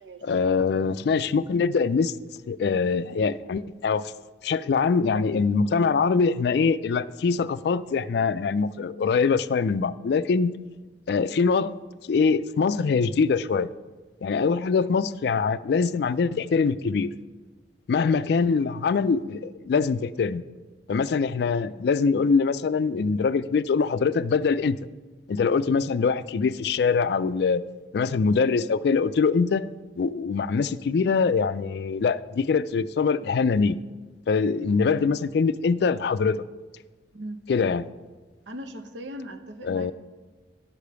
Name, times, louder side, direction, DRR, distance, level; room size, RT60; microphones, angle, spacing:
voice 1, 0.2-2.1 2.5-4.1 4.4-10.5 11.1-11.7 12.0-13.7 14.2-17.1 17.9-20.4 20.9-24.8 25.3-27.6 27.9-29.7 30.0-33.8 34.3-36.4 37.5-37.9 39.6-39.9, left 5 dB, 60° left, 15 dB, 0.3 m, -23 dB
voice 2, 37.1-37.5 38.5-39.9, equal, 80° right, 8 dB, 0.8 m, -39 dB
11.0 x 5.0 x 6.8 m, 1.3 s
head